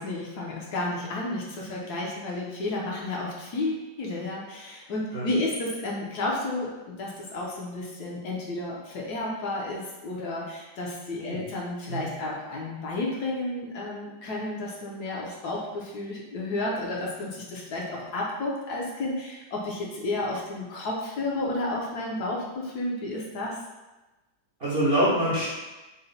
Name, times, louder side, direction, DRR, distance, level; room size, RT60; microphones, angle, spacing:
voice 1, 0.0-23.6, left 2 dB, 70° left, -3 dB, 1.1 m, -32 dB
voice 2, 24.6-25.5, right 1 dB, 60° right, -8 dB, 0.6 m, -25 dB
4.0 x 2.1 x 3.9 m, 1.1 s
omnidirectional pair, 2.0 m